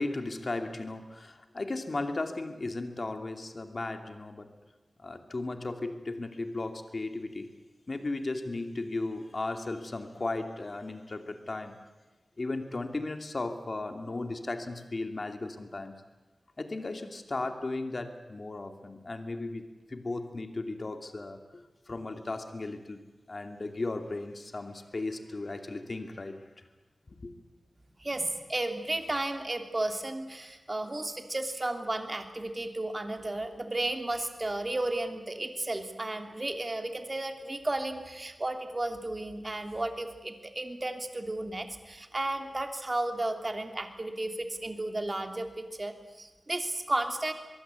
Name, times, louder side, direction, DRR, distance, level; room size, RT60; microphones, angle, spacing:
voice 1, 0.0-4.5 5.0-7.5 7.9-11.8 12.4-16.0 16.6-23.0 23.3-26.4 27.1-27.3, left 2 dB, 50° left, 6 dB, 2.7 m, -36 dB
voice 2, 28.0-47.3, right 2 dB, 30° right, 6 dB, 3.0 m, -33 dB
24.0 x 23.0 x 8.4 m, 1.2 s
wide cardioid pair, 95°, 0 cm